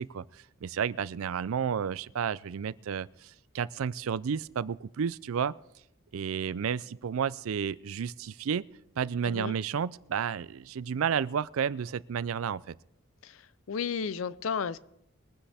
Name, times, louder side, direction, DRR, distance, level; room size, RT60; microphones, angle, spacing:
voice 1, 0.0-5.5 6.1-8.7 9.0-12.7, right 7 dB, 80° right, 0.4 m, -32 dB
voice 2, 9.2-9.6 13.2-14.8, left 6 dB, 70° left, 0.5 m, -33 dB
22.0 x 9.9 x 3.5 m
head